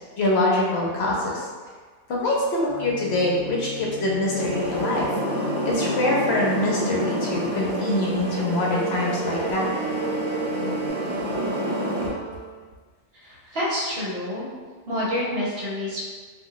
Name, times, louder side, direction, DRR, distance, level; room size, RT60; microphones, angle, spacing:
voice 1, 0.2-1.5 2.1-5.1 5.6-9.7, left 2 dB, 65° left, -3 dB, 0.8 m, -24 dB
sound 1, 2.7-7.8 9.5-10.9, right 1 dB, 40° left, 0.5 m, -37 dB
sound 2, 4.3-12.1, equal, 15° right, 0.8 m, -28 dB
Wind instrument woodwind instrument, 8.7-12.6, right 4 dB, 90° right, 0.9 m, -38 dB
voice 2, 13.1-14.5 14.9-16.1, left 1 dB, 60° right, -6 dB, 1.0 m, -28 dB
2.4 x 2.2 x 3.7 m, 1.5 s
omnidirectional pair, 1.2 m